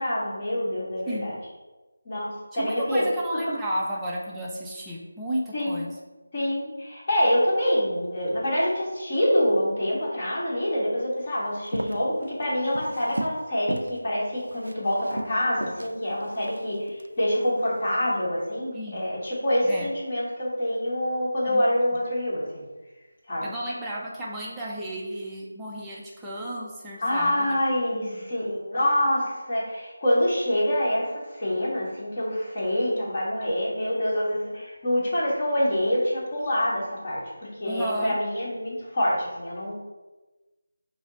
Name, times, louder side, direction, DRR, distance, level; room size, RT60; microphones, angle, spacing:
voice 1, 0.0-1.4 2.0-3.1 5.5-5.8 6.3-22.6 23.3-23.5 27.0-37.2 37.6-39.7, equal, 35° left, -6 dB, 1.4 m, -26 dB
voice 2, 2.5-5.9 18.7-19.1 19.6-19.9 21.5-21.6 23.4-27.6 27.9-28.2 37.6-38.2, right 1 dB, 5° right, -7 dB, 0.5 m, -33 dB
Walk footsteps, 11.5-13.4 13.7-14.0 14.3-17.1 17.6-17.9, right 1 dB, 85° right, 0.3 m, -35 dB
4.8 x 2.0 x 3.8 m, 1.2 s
figure-of-eight pair, 165°, 0 cm